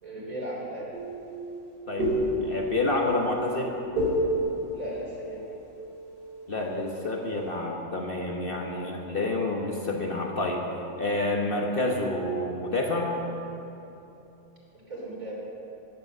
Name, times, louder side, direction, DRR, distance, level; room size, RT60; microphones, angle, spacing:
voice 1, 0.0-0.9 4.7-5.5 14.9-15.5, right 1 dB, 65° right, -4 dB, 3.8 m, -36 dB
sound 1, 0.9-6.5, equal, 80° right, 2.9 m, -30 dB
voice 2, 2.4-3.7 6.5-10.6 11.0-13.1, left 2 dB, 40° left, 0 dB, 1.3 m, -28 dB
14.5 x 10.0 x 6.6 m, 3.0 s
omnidirectional pair, 1.6 m